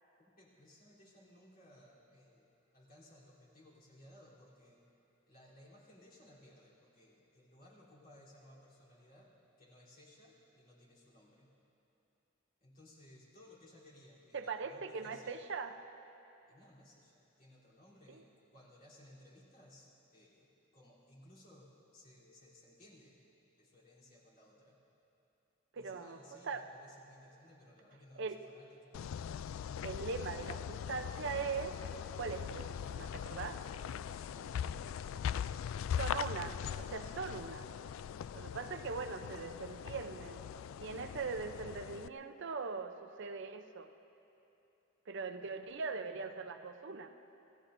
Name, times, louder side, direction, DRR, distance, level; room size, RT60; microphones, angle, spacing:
voice 1, 0.2-4.9 5.3-11.5 12.6-15.4 16.4-23.2 23.6-24.8 25.7-29.0 33.9-35.7, left 1 dB, 50° left, -6 dB, 3.5 m, -60 dB
voice 2, 14.3-15.8 18.1-18.2 25.7-26.6 28.2-28.4 29.8-31.8 32.2-33.6 36.0-37.7 38.3-40.4 40.8-43.9 45.1-47.1, right 4 dB, 65° right, 8 dB, 0.6 m, -41 dB
sound 1, 28.9-42.1, left 8 dB, 90° left, 0.3 m, -41 dB
28.0 x 16.0 x 2.7 m, 2.9 s
head